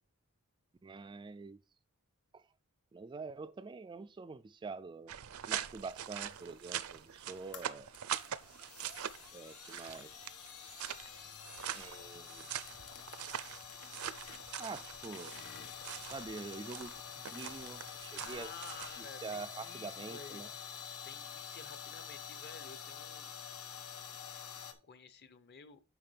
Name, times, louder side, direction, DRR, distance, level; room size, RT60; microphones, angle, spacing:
voice 1, 0.8-1.6 2.3-2.5 2.9-5.2 5.5-7.9 9.3-10.2 11.7-12.5 14.6-15.4 16.1-18.5 19.0-20.5, right 4 dB, 20° right, 0.3 m, -46 dB
sound 1, 5.1-19.0, right 10 dB, 70° right, 0.6 m, -44 dB
sound 2, 5.9-24.7, left 7 dB, 90° left, 1.2 m, -48 dB
voice 2, 18.2-20.4 21.0-23.3 24.3-24.5 24.8-25.8, left 5 dB, 50° left, 0.9 m, -52 dB
9.5 x 6.1 x 3.4 m
head